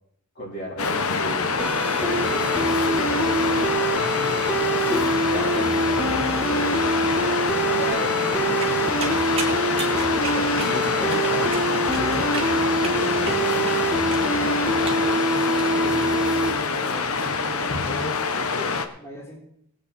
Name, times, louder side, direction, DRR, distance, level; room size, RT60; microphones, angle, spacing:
voice 1, 0.4-1.5 3.9-4.3 4.9-6.8 7.3-8.7 10.2-13.6 14.2-14.8, equal, 50° left, -4 dB, 4.1 m, -35 dB
Waves surf, 0.8-18.9, left 4 dB, 85° left, 1.1 m, -25 dB
sound 1, 1.6-16.5, right 2 dB, 5° right, 1.5 m, -25 dB
voice 2, 2.1-3.9 15.8-19.4, equal, 15° left, -5 dB, 3.3 m, -39 dB
sound 2, 8.6-15.7, right 4 dB, 25° right, 2.5 m, -35 dB
20.0 x 8.4 x 4.3 m, 0.73 s
head